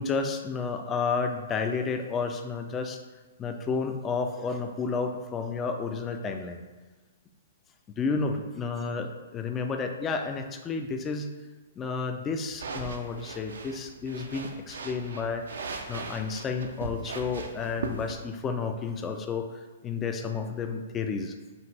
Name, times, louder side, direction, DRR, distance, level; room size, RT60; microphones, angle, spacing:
voice 1, 0.0-3.0 3.4-6.6 8.0-11.3 11.8-15.5 15.9-21.3, left 4 dB, 20° left, 6 dB, 0.4 m, -31 dB
sound 1, 12.5-18.1, right 4 dB, 70° right, 0.5 m, -39 dB
5.2 x 2.5 x 3.3 m, 1.3 s
hypercardioid pair, 120°, 0 cm